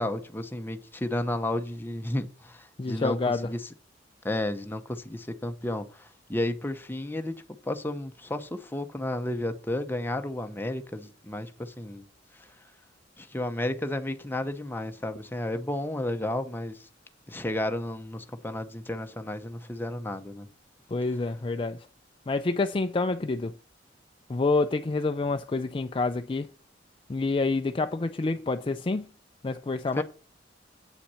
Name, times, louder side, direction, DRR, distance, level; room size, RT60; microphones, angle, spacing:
voice 1, 0.0-3.2 3.4-3.6 4.2-12.0 13.2-16.9 17.3-20.5 30.0-30.1, left 1 dB, 10° left, 0.8 m, -32 dB
voice 2, 2.8-3.5 20.9-21.9 22.3-23.5 24.3-26.5 27.1-29.1 29.4-30.0, left 3 dB, 30° left, 0.4 m, -28 dB
8.3 x 5.8 x 5.6 m
head